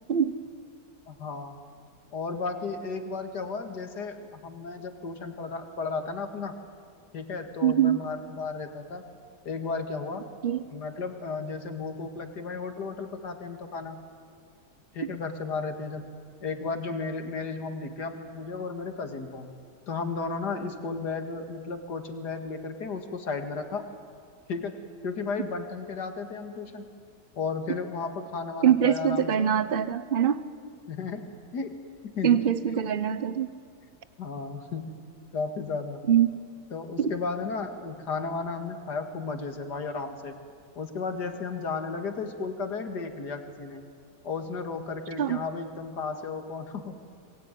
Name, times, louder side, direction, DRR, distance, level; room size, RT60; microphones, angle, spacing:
voice 1, 1.1-1.6 2.1-6.5 7.1-9.0 9.4-10.2 10.7-14.0 14.9-16.0 16.4-19.5 19.9-23.8 24.5-24.8 25.0-26.9 27.4-29.5 30.9-31.2 31.5-31.8 32.2-32.4 34.2-34.9 35.3-36.0 36.7-40.3 40.8-43.9 44.2-46.9, left 4 dB, 70° left, 6 dB, 2.6 m, -34 dB
voice 2, 7.6-8.0 10.4-10.6 28.6-30.4 32.2-33.5 36.1-36.3 37.0-37.1 45.2-45.4, right 9 dB, 40° right, 14 dB, 0.9 m, -23 dB
27.0 x 22.0 x 9.3 m, 2.1 s
omnidirectional pair, 1.8 m